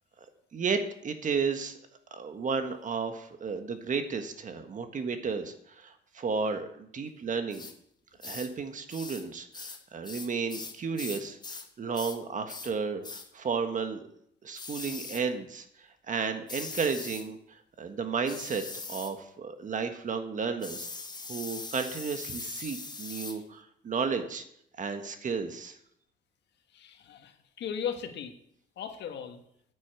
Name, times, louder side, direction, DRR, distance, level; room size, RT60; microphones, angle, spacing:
voice 1, 0.5-1.8 2.1-7.7 8.2-14.0 14.4-15.6 16.1-17.4 17.8-20.9 21.3-24.4 24.8-25.8, right 5 dB, 45° right, 7 dB, 1.5 m, -33 dB
sound 1, 7.5-7.8 8.2-8.5 8.9-9.3 9.5-11.7 11.9-12.2 12.5-12.7 13.0-13.3 14.6-15.3 16.5-17.3 18.3-19.2 20.6-23.4, left 4 dB, 25° left, 1.2 m, -41 dB
voice 2, 26.7-28.3 28.8-29.4, left 8 dB, 75° left, 6 dB, 1.5 m, -37 dB
9.3 x 8.6 x 6.8 m, 0.71 s
cardioid pair, 95°, 18 cm